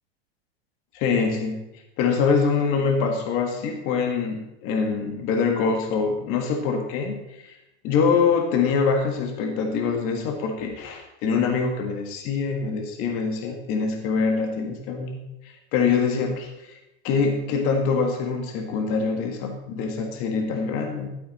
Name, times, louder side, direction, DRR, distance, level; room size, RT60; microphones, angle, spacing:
voice 1, 0.9-1.7 2.0-7.6 7.8-15.2 15.4-16.7 17.0-21.1, left 5 dB, 40° left, 3 dB, 1.8 m, -24 dB
13.0 x 7.9 x 4.2 m, 0.91 s
supercardioid pair, 150°, 32 cm